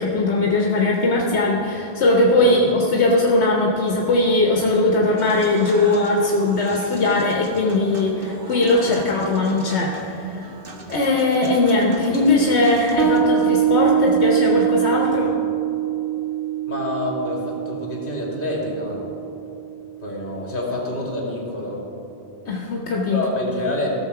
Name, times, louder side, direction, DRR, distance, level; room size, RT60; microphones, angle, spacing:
voice 1, 0.0-10.5 10.9-15.3 22.5-23.2, left 2 dB, 80° left, -1 dB, 1.3 m, -19 dB
Human voice / Acoustic guitar / Piano, 5.2-13.2, right 2 dB, 55° right, 1.3 m, -39 dB
Bass guitar, 13.0-20.1, right 10 dB, 75° right, 1.7 m, -23 dB
voice 2, 16.6-19.0 20.0-21.8 23.1-23.9, left 2 dB, 50° left, -3 dB, 2.6 m, -27 dB
16.5 x 6.6 x 4.8 m, 2.9 s
omnidirectional pair, 1.1 m